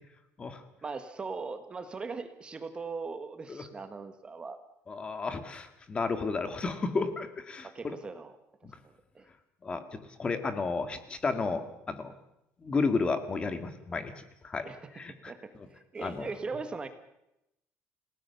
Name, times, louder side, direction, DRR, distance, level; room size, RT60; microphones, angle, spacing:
voice 1, 0.8-4.6 7.6-8.3 8.8-9.3 14.6-14.9 15.3-16.9, right 4 dB, 20° right, 9 dB, 1.5 m, -39 dB
voice 2, 4.9-7.9 8.6-8.7 9.6-12.1 12.6-14.1 14.4-14.7 14.9-15.3 16.0-16.3, left 4 dB, 20° left, 9 dB, 2.0 m, -32 dB
29.5 x 18.0 x 7.0 m, 0.85 s
cardioid pair, 165°, 5 cm